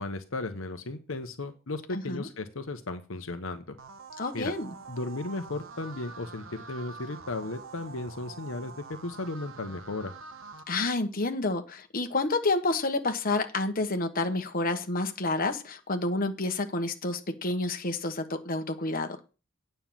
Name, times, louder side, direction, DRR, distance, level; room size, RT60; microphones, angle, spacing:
voice 1, 0.0-3.8 4.3-4.5 4.9-10.1, left 2 dB, 75° left, 8 dB, 1.0 m, -35 dB
voice 2, 1.9-2.3 4.2-4.7 10.7-19.2, left 2 dB, 45° left, 6 dB, 1.3 m, -29 dB
sound 1, 3.8-10.6, right 4 dB, 70° right, 1.2 m, -46 dB
9.3 x 5.6 x 7.5 m, 0.32 s
head